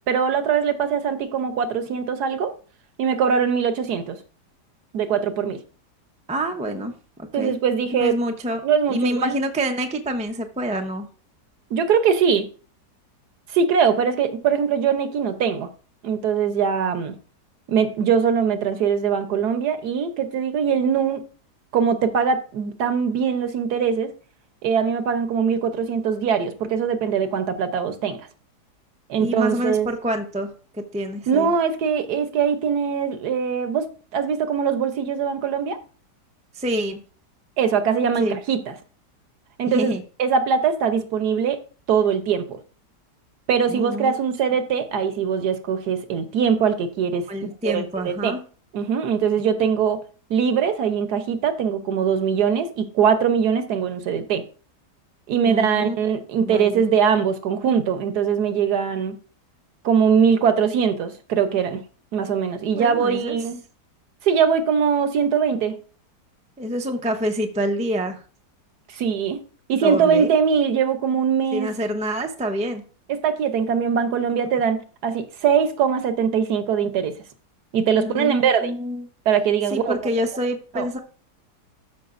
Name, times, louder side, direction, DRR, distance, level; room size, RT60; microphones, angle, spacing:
voice 1, 0.1-2.5 3.0-4.2 4.9-5.6 7.3-8.2 8.6-9.4 11.7-12.5 13.5-15.7 16.0-17.1 17.7-21.2 21.7-24.1 24.6-28.2 29.1-29.9 31.3-35.8 37.6-38.7 39.6-39.9 40.2-41.6 41.9-42.6 43.5-47.2 47.6-48.3 48.7-50.0 50.3-54.4 55.3-59.2 59.8-61.8 62.1-63.6 64.2-65.7 68.9-69.4 69.7-71.7 73.1-77.1 77.7-78.7 79.3-80.0 80.8-80.9, right 7 dB, 70° right, 1.4 m, -21 dB
voice 2, 6.3-7.0 7.3-7.5 7.9-8.6 8.9-11.1 29.2-31.5 36.5-37.0 38.2-38.4 39.7-40.0 43.7-44.2 47.3-48.4 55.4-56.0 56.4-56.8 62.7-63.4 66.6-68.2 69.8-70.3 71.5-72.8 77.9-79.0 79.7-81.0, equal, 10° right, 0.4 m, -27 dB
13.0 x 6.0 x 2.5 m
omnidirectional pair, 1.8 m